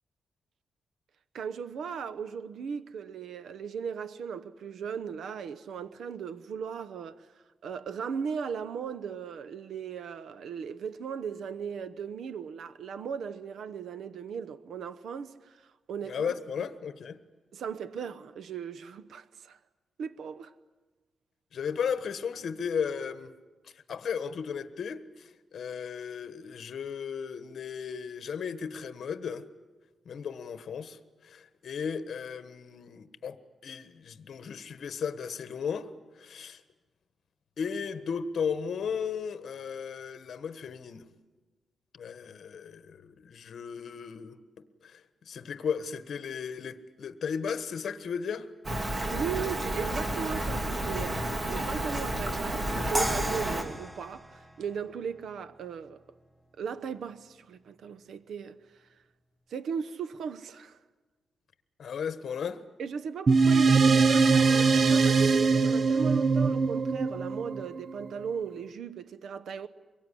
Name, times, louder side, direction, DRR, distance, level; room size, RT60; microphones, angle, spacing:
voice 1, 1.3-7.3 7.6-16.3 17.5-19.6 20.0-20.5 49.0-56.0 56.6-58.6 59.5-60.8 62.8-69.7, right 6 dB, 85° right, 0.9 m, -37 dB
voice 2, 16.0-17.2 21.5-23.3 23.9-29.4 30.0-33.4 33.6-35.9 36.2-36.6 37.6-41.0 41.9-44.4 44.8-45.0 45.3-48.5 61.8-62.6, left 6 dB, 65° left, 1.4 m, -35 dB
Rain, 48.6-53.6, right 1 dB, 25° right, 2.8 m, -31 dB
sound 1, 52.9-56.0, right 1 dB, 10° right, 1.0 m, -36 dB
sound 2, 63.3-68.1, right 4 dB, 45° right, 0.8 m, -22 dB
24.5 x 22.5 x 10.0 m
wide cardioid pair, 135°, 0 cm